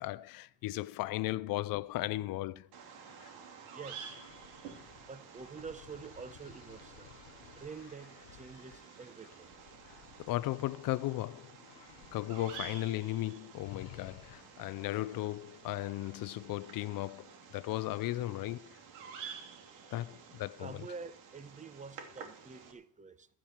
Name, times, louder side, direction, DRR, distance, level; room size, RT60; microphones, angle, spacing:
voice 1, 0.0-2.7 3.2-3.3 9.9-11.6 12.1-18.8 19.9-20.9, left 16 dB, 50° left, 0.6 m, -36 dB
Bird vocalization bird call bird song, 2.7-22.7, right 6 dB, 85° right, 3.0 m, -51 dB
voice 2, 3.7-4.1 5.1-7.1 7.6-9.5 20.6-23.3, right 5 dB, 15° right, 0.9 m, -47 dB
sound 1, 4.0-11.1 11.5-12.8 13.1-13.2 13.6-14.7, left 12 dB, 90° left, 1.0 m, -56 dB
15.0 x 12.0 x 4.6 m
supercardioid pair, 100°, 43 cm